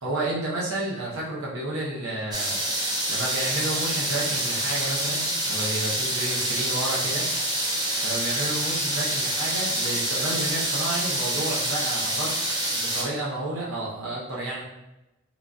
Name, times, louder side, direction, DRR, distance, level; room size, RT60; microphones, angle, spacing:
voice 1, 0.0-2.6 3.1-7.3 8.0-12.3 12.7-14.6, right 1 dB, 65° right, -5 dB, 0.7 m, -31 dB
sound 1, 2.3-13.0, right 1 dB, 20° right, 0.4 m, -27 dB
3.7 x 2.5 x 2.3 m, 0.96 s
head